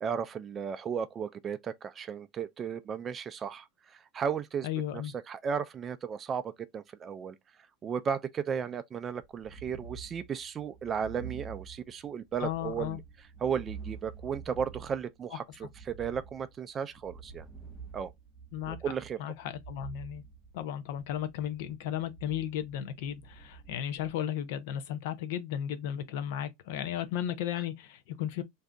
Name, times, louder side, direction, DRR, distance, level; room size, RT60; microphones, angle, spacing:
voice 1, 0.0-4.7 4.9-5.0 5.3-7.4 7.8-13.0 13.4-17.5 17.9-18.1 18.7-19.2, right 7 dB, 25° right, 0.3 m, -35 dB
voice 2, 4.6-5.1 12.4-13.0 18.5-18.8 19.2-20.2 20.5-28.4, left 10 dB, 65° left, 0.6 m, -35 dB
sound 1, 9.2-24.1, right 6 dB, ahead, 0.8 m, -48 dB
2.6 x 2.4 x 3.3 m
supercardioid pair, 130°, 0 cm